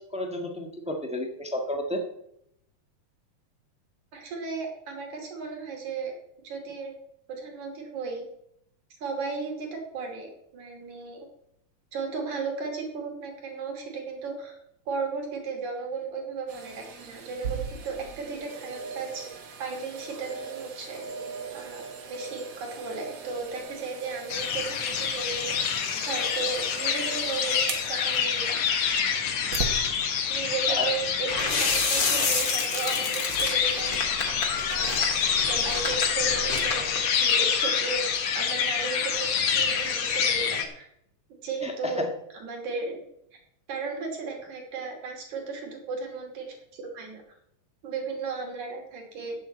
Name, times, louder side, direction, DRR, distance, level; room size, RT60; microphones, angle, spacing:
voice 1, 0.1-2.0 30.7-30.9 41.6-42.0, left 1 dB, 5° right, 3 dB, 0.5 m, -31 dB
voice 2, 4.1-6.1 6.4-6.9 7.3-8.2 9.0-11.3 11.9-14.6 14.9-19.3 19.6-21.0 21.5-21.8 22.1-25.5 26.0-28.7 30.3-33.9 34.7-38.1 38.3-40.9 41.4-42.1 42.3-43.0 43.7-47.2 47.8-49.4, right 4 dB, 70° right, 1 dB, 3.9 m, -35 dB
sound 1, 16.5-29.8 30.3-30.4, right 4 dB, 50° right, 1.7 m, -39 dB
sound 2, 24.3-40.6, left 7 dB, 60° left, 2.4 m, -27 dB
sound 3, 31.3-37.1, left 3 dB, 35° left, 2.1 m, -30 dB
9.2 x 8.2 x 7.9 m, 0.75 s
omnidirectional pair, 3.5 m